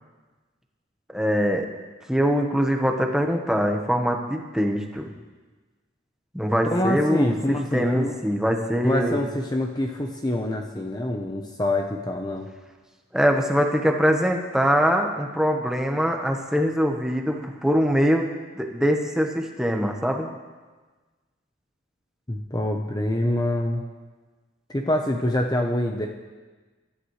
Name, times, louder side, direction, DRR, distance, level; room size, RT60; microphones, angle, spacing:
voice 1, 1.1-1.7 2.1-5.1 6.3-7.3 7.7-9.2 13.1-20.3, equal, 5° right, 2 dB, 1.2 m, -23 dB
voice 2, 6.6-8.1 8.8-12.5 22.3-23.8 24.7-26.1, left 1 dB, 20° left, 2 dB, 0.9 m, -25 dB
24.5 x 13.5 x 3.3 m, 1.3 s
head